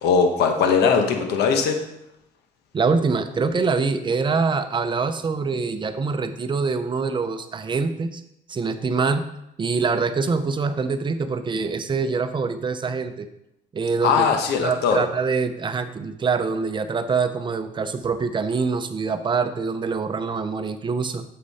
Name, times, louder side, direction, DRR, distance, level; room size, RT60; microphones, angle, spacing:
voice 1, 0.0-1.8 14.0-15.0, left 5 dB, 80° left, 4 dB, 1.2 m, -20 dB
voice 2, 2.7-8.2 8.5-9.2 9.6-13.3 13.7-14.3 14.6-21.2, right 4 dB, 30° right, 9 dB, 0.7 m, -24 dB
8.3 x 6.7 x 4.2 m, 0.85 s
cardioid pair, 110°, 17 cm